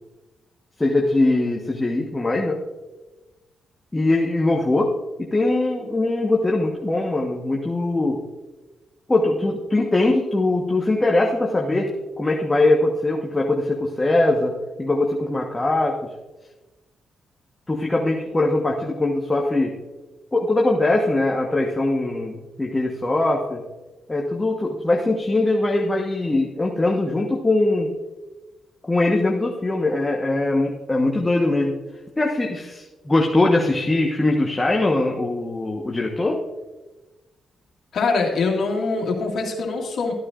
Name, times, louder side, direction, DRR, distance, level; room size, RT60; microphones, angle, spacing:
voice 1, 0.8-2.6 3.9-4.9 5.2-8.2 9.1-11.9 12.2-16.0 17.7-19.7 20.3-23.6 24.1-27.9 28.9-31.8 32.2-36.4, left 2 dB, 20° left, 0 dB, 1.3 m, -21 dB
voice 2, 37.9-40.1, left 4 dB, 70° left, 0 dB, 2.1 m, -23 dB
13.5 x 9.5 x 2.6 m, 1.1 s
cardioid pair, 65°, 0 cm